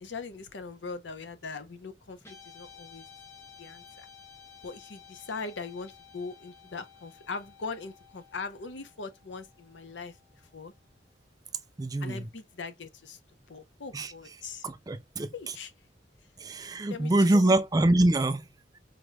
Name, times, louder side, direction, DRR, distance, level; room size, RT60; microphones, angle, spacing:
voice 1, 0.0-3.1 3.6-4.1 4.6-10.2 10.5-10.7 12.0-13.2 13.5-14.6 15.3-15.7 16.9-17.6, left 4 dB, 85° left, 0.7 m, -41 dB
Guitar, 2.2-10.7, left 7 dB, 15° left, 1.0 m, -54 dB
voice 2, 11.8-12.3 13.9-14.1 14.6-15.3 16.4-18.4, right 1 dB, 20° right, 0.4 m, -24 dB
4.8 x 3.0 x 2.3 m
head